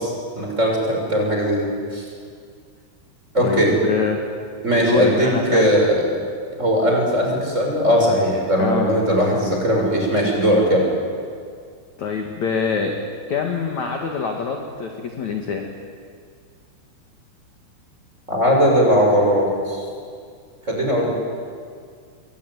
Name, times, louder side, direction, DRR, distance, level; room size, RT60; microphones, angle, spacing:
voice 1, 0.0-2.0 3.3-3.7 4.6-6.0 6.6-10.8 18.3-19.8 20.7-21.1, equal, 15° right, -1 dB, 6.4 m, -19 dB
voice 2, 3.4-4.2 4.8-5.7 8.6-8.9 12.0-13.0 13.3-15.7, left 5 dB, 50° left, 2 dB, 2.5 m, -24 dB
27.0 x 23.0 x 9.6 m, 2.1 s
omnidirectional pair, 5.5 m